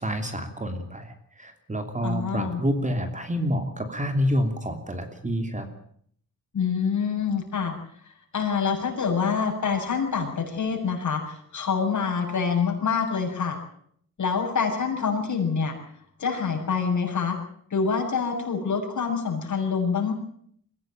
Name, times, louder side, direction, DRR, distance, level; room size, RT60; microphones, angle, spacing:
voice 1, 0.0-5.7, equal, 20° right, 7 dB, 3.1 m, -28 dB
voice 2, 2.0-2.6 6.5-7.7 8.3-13.6 14.2-15.8 16.2-17.4 17.7-20.1, left 6 dB, 60° left, 2 dB, 7.4 m, -26 dB
23.0 x 16.0 x 9.3 m, 0.65 s
cardioid pair, 115°, 34 cm